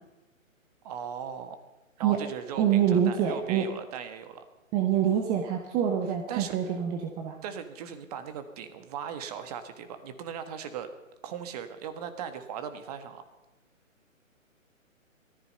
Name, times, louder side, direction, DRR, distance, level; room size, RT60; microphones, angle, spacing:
voice 1, 0.8-1.6 2.0-4.4 6.3-6.8 7.4-10.9 11.2-13.2, right 8 dB, 30° right, 9 dB, 1.6 m, -38 dB
voice 2, 2.6-3.6 4.7-7.4, right 9 dB, 10° right, 3 dB, 0.8 m, -26 dB
18.5 x 14.0 x 5.5 m, 1.1 s
figure-of-eight pair, 135°, 40 cm